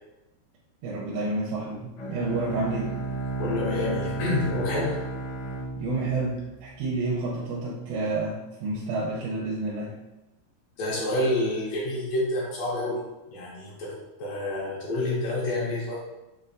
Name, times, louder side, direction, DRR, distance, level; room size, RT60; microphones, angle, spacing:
voice 1, 0.8-2.9 5.8-6.4 6.6-9.9, right 2 dB, 85° right, -5 dB, 2.1 m, -29 dB
Bowed string instrument, 2.0-7.0, right 3 dB, 90° left, 1.3 m, -33 dB
voice 2, 3.4-5.0 10.8-13.0 13.3-16.0, left 2 dB, 70° left, -4 dB, 1.8 m, -28 dB
5.2 x 2.2 x 2.5 m, 0.98 s
omnidirectional pair, 3.3 m